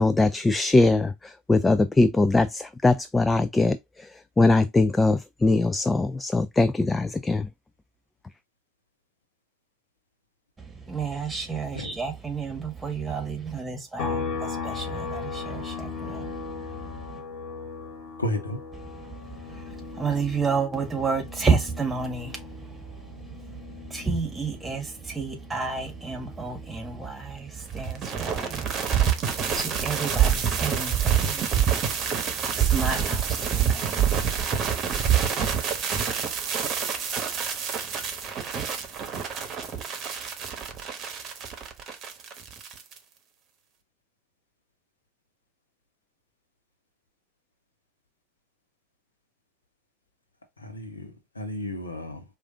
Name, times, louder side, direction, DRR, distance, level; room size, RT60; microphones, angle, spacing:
voice 1, 0.0-4.1 4.4-7.5, left 2 dB, 15° left, 0.3 m, -21 dB
voice 2, 10.9-16.3 20.0-22.4 23.9-28.6 29.5-31.5 32.6-34.2, right 5 dB, 20° right, 1.5 m, -30 dB
sound 1, 14.0-27.5 27.9-30.1, left 5 dB, 60° left, 1.3 m, -38 dB
voice 3, 18.2-18.6 50.6-52.2, left 1 dB, 90° left, 0.8 m, -32 dB
sound 2, 27.7-43.0, right 8 dB, 45° right, 1.0 m, -26 dB
4.7 x 2.5 x 2.6 m
figure-of-eight pair, 70°, 0 cm